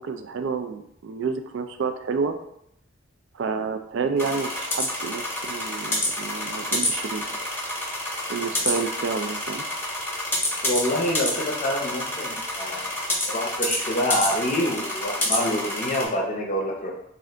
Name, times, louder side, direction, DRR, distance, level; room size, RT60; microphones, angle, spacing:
voice 1, 0.0-2.4 3.3-7.4 8.3-9.6, right 5 dB, 60° right, 7 dB, 0.3 m, -29 dB
sound 1, 4.2-16.0, left 1 dB, 10° left, 0.9 m, -28 dB
voice 2, 10.6-12.9 13.3-16.9, equal, 35° left, -2 dB, 0.5 m, -26 dB
3.3 x 2.4 x 3.7 m, 0.75 s
head